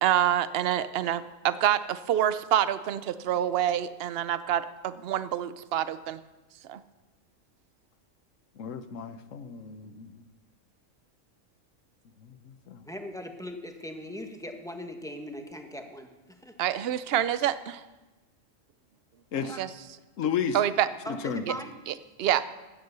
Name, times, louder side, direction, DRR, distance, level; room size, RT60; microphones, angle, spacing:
voice 1, 0.0-6.2 6.7-6.8 16.6-17.8 19.4-19.7 20.5-20.9 21.9-22.5, right 11 dB, 60° right, 14 dB, 0.8 m, -27 dB
voice 2, 8.6-10.1 12.7-12.8 19.3-19.5 20.2-20.6 21.2-21.4, left 7 dB, 80° left, 11 dB, 1.2 m, -32 dB
voice 3, 12.8-16.5 19.3-19.6 21.0-21.8, left 1 dB, 5° left, 4 dB, 1.2 m, -40 dB
13.5 x 9.5 x 6.9 m, 1.1 s
omnidirectional pair, 1.3 m